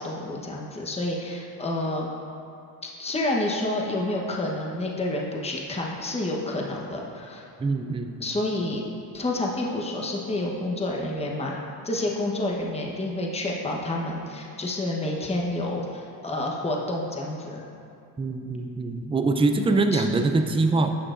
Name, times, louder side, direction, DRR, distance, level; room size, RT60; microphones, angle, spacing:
voice 1, 0.0-2.1 2.8-7.4 8.2-8.8 9.1-17.6 19.6-20.0, left 1 dB, 15° left, -2 dB, 0.9 m, -29 dB
voice 2, 7.6-8.2 18.2-21.0, right 3 dB, 15° right, 6 dB, 0.4 m, -24 dB
11.5 x 7.3 x 2.5 m, 2.5 s
cardioid pair, 105°, 42 cm